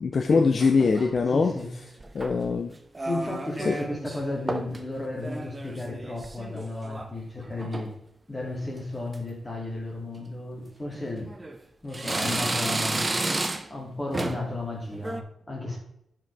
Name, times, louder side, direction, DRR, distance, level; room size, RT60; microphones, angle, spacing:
voice 1, 0.0-1.5 2.1-2.7 3.7-3.8, left 4 dB, 50° left, 6 dB, 0.5 m, -22 dB
sound 1, 0.6-1.3 2.0-2.5 3.0-4.2 4.5-4.8 5.1-7.1 7.4-7.9 8.5-8.8 9.1-9.2 10.2-10.3 10.9-11.6 11.9-13.8 14.1-14.5 14.9-15.2, right 2 dB, 20° right, 0.6 m, -32 dB
voice 2, 1.3-1.7 3.0-7.9 8.3-11.3 11.8-15.8, left 2 dB, 15° left, -1 dB, 2.5 m, -34 dB
10.5 x 4.9 x 3.4 m, 0.76 s
wide cardioid pair, 115°, 0 cm